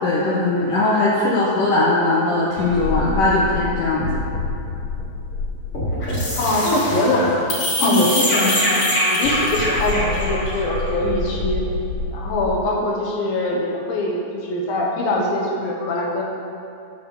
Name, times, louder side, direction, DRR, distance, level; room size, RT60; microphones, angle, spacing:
voice 1, 0.0-4.3 7.8-8.1, left 2 dB, 85° left, -6 dB, 1.9 m, -19 dB
sound 1, 2.6-12.6, left 1 dB, 35° left, 2.1 m, -24 dB
voice 2, 6.4-7.4 7.8-8.8 9.1-11.7 12.1-16.2, left 1 dB, 65° left, -2 dB, 2.5 m, -23 dB
12.5 x 4.3 x 6.8 m, 2.6 s
omnidirectional pair, 5.3 m